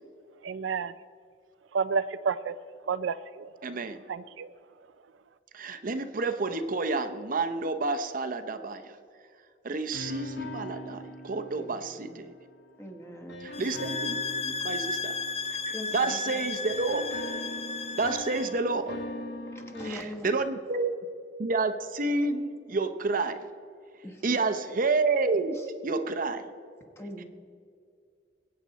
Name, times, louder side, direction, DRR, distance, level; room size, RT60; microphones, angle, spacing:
voice 1, 0.4-0.9 1.7-2.5 2.9-3.5 4.1-4.5, right 5 dB, 85° right, 13 dB, 0.4 m, -30 dB
voice 2, 3.6-4.0 5.5-8.9 9.6-12.3 13.4-15.1 15.5-15.6 15.9-17.0 17.9-19.0 19.9-20.9 21.4-23.4 24.2-25.6 25.8-26.4, right 3 dB, 50° right, 8 dB, 0.7 m, -29 dB
sound 1, 9.9-12.6 13.3-16.3 16.7-19.9, left 1 dB, 65° left, 1.2 m, -41 dB
voice 3, 11.5-12.1 12.8-13.5 15.7-16.4 19.5-20.4 24.0-24.4 25.5-25.7 27.0-27.2, left 1 dB, 15° left, 4 dB, 1.3 m, -41 dB
sound 2, 13.5-18.6, left 4 dB, 35° left, 0.7 m, -34 dB
21.5 x 8.9 x 4.1 m, 2.3 s
head